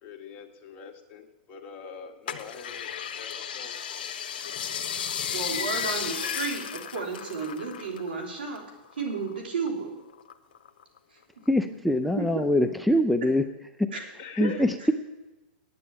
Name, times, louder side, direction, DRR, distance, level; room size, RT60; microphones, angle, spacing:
voice 1, 0.0-4.2 14.2-14.7, left 6 dB, 35° left, 3 dB, 1.8 m, -45 dB
sound 1, 2.3-8.1 8.4-9.7 10.1-11.0 11.5-11.6, left 8 dB, 70° left, 1.0 m, -34 dB
voice 2, 5.3-8.6 9.0-9.9 12.0-12.5 13.9-14.0 14.4-14.6, right 4 dB, 80° right, 1 dB, 3.3 m, -32 dB
voice 3, 11.5-13.4 13.8-13.9 14.4-14.9, left 1 dB, ahead, 8 dB, 0.5 m, -23 dB
9.5 x 7.6 x 9.0 m, 1.1 s
hypercardioid pair, 120°, 5 cm